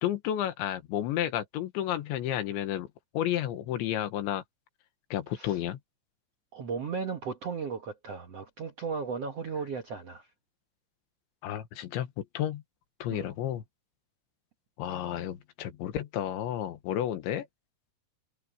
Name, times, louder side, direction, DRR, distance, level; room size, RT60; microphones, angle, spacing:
voice 1, 0.0-2.9 3.1-4.4 5.1-5.8 11.4-12.6 13.0-13.6 14.8-17.5, left 11 dB, 90° left, 3.9 m, -31 dB
voice 2, 6.5-10.3 13.1-13.3, right 5 dB, 65° right, 1.5 m, -35 dB
omnidirectional pair, 5.1 m